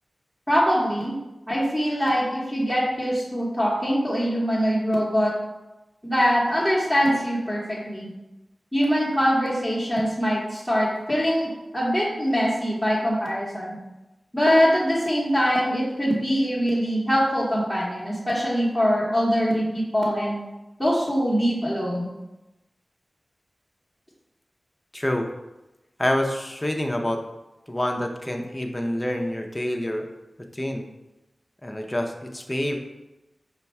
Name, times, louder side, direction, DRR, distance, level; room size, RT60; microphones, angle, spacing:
voice 1, 0.5-1.1 1.5-5.3 6.0-8.1 8.7-13.8 14.3-20.4 20.8-22.1, equal, ahead, -7 dB, 1.0 m, -23 dB
voice 2, 24.9-25.3 26.0-27.2 27.7-30.0 30.5-30.8 31.6-32.8, left 1 dB, 15° left, 2 dB, 0.5 m, -27 dB
5.3 x 2.3 x 4.2 m, 1.0 s
wide cardioid pair, 90°, 0 cm